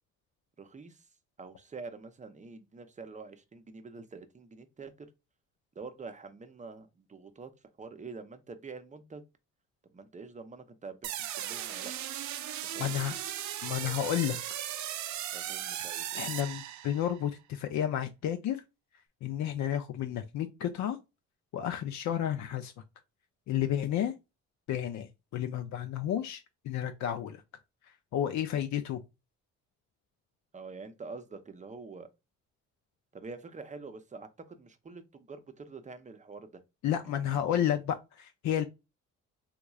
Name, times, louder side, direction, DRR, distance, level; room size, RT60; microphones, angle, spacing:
voice 1, 0.6-1.1 1.4-5.1 5.8-7.5 7.8-9.2 9.9-11.9 12.7-13.1 15.3-16.3 30.5-32.1 33.1-36.6 37.0-37.6, right 4 dB, 25° right, 0.6 m, -46 dB
sound 1, 11.0-17.2, right 11 dB, 70° right, 0.5 m, -37 dB
voice 2, 12.8-13.2 13.6-14.4 16.1-18.6 19.2-21.0 21.5-22.7 23.5-24.1 24.7-27.4 28.1-29.0 36.8-38.6, left 10 dB, 70° left, 0.5 m, -31 dB
3.6 x 3.0 x 2.3 m
cardioid pair, 90°, 30 cm